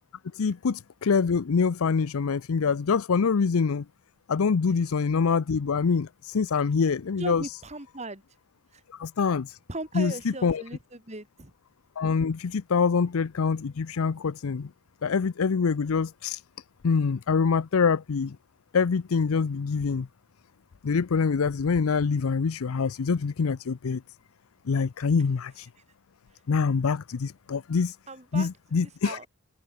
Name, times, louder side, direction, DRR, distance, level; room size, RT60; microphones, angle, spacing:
voice 1, 0.3-3.8 4.3-7.5 8.9-9.6 9.9-10.1 10.4-10.6 12.0-14.7 15.0-16.4 16.8-18.4 18.7-20.1 20.8-24.0 24.7-25.7 26.5-28.0 28.3-29.2, left 5 dB, 80° left, 0.5 m, -25 dB
voice 2, 7.2-8.2 8.7-8.8 9.7-11.5 28.1-28.5 28.8-29.3, right 2 dB, 30° right, 3.0 m, -37 dB
head